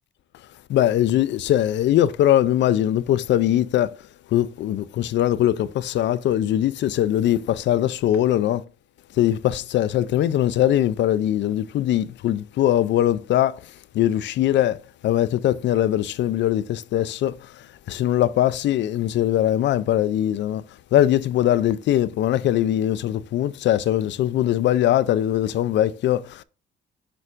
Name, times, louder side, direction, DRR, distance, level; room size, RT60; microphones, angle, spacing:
voice 1, 0.7-3.9 4.3-8.6 9.2-13.6 13.9-14.8 15.0-20.6 20.9-26.4, left 12 dB, 65° left, 0.4 m, -21 dB
6.7 x 5.9 x 2.5 m
cardioid pair, 90°, 20 cm